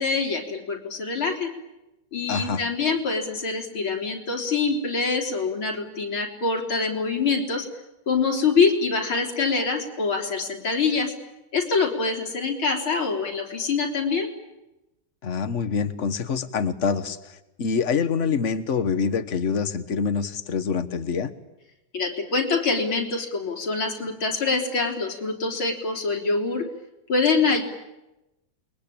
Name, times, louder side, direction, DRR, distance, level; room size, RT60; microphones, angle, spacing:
voice 1, 0.0-1.5 2.1-7.7 8.1-11.1 11.5-14.3 21.9-26.7 27.1-27.6, left 4 dB, 85° left, 0 dB, 4.3 m, -25 dB
voice 2, 2.3-2.6 15.2-21.3, left 6 dB, 40° left, 11 dB, 1.5 m, -26 dB
29.0 x 22.5 x 8.8 m, 0.97 s
omnidirectional pair, 2.2 m